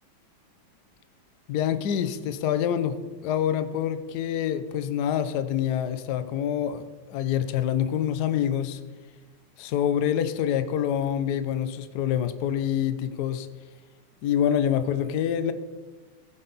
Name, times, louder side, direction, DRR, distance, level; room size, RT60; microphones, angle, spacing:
voice 1, 1.5-8.8 9.6-13.5 14.2-15.5, left 9 dB, 65° left, 11 dB, 1.1 m, -26 dB
15.5 x 9.8 x 4.0 m, 1.3 s
omnidirectional pair, 2.2 m